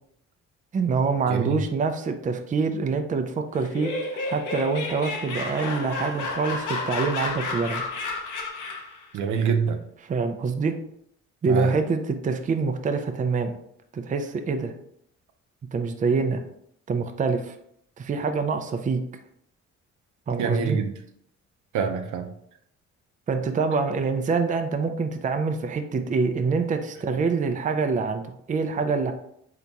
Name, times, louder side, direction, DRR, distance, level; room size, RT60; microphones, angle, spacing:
voice 1, 0.7-7.8 10.0-10.7 11.4-13.6 13.9-14.7 15.7-16.4 16.9-17.6 18.0-19.0 20.3-20.8 23.3-29.1, right 4 dB, 25° right, 0.4 m, -25 dB
Laughter, 3.5-9.0, left 3 dB, 85° left, 0.9 m, -31 dB
voice 2, 9.1-9.8 11.5-11.7 20.3-20.9 21.7-22.3, right 6 dB, 80° right, 0.6 m, -25 dB
3.9 x 2.9 x 3.5 m
cardioid pair, 90°, 30 cm